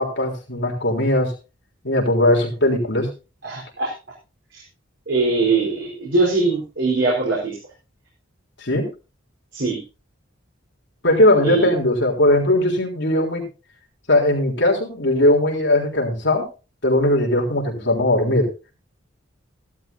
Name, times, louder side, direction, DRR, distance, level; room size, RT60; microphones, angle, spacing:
voice 1, 0.0-1.3 1.8-3.1 8.6-8.9 11.0-13.4 14.1-16.5 16.8-18.5, left 1 dB, 60° left, -1 dB, 3.5 m, -19 dB
voice 2, 3.4-3.9 4.5-4.6 5.1-7.6 9.5-9.8 11.4-11.7, right 3 dB, 65° right, -4 dB, 4.4 m, -21 dB
15.5 x 12.0 x 2.7 m, 0.31 s
head